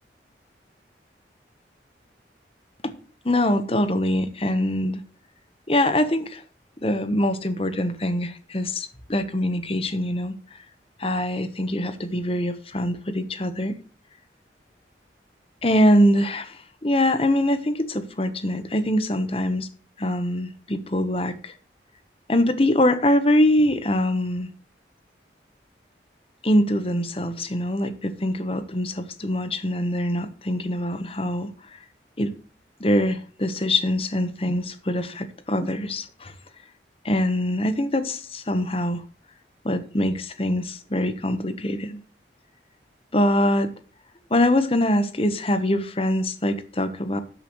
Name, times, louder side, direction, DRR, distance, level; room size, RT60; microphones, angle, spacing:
voice 1, 3.2-5.0 5.7-6.4 6.8-10.3 11.0-13.8 15.6-19.7 20.0-21.5 22.3-24.5 26.4-31.5 32.2-32.3 32.8-36.3 37.0-39.0 39.6-42.0 43.1-43.7 44.3-47.2, left 1 dB, 30° left, 11 dB, 1.1 m, -23 dB
13.0 x 9.0 x 3.1 m, 0.40 s
head